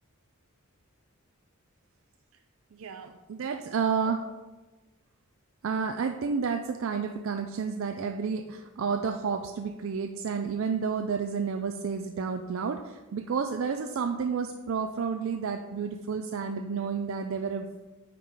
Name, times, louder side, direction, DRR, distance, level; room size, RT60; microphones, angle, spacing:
voice 1, 2.7-4.3 5.6-17.7, right 5 dB, 65° right, 6 dB, 0.4 m, -31 dB
9.3 x 3.8 x 4.7 m, 1.2 s
head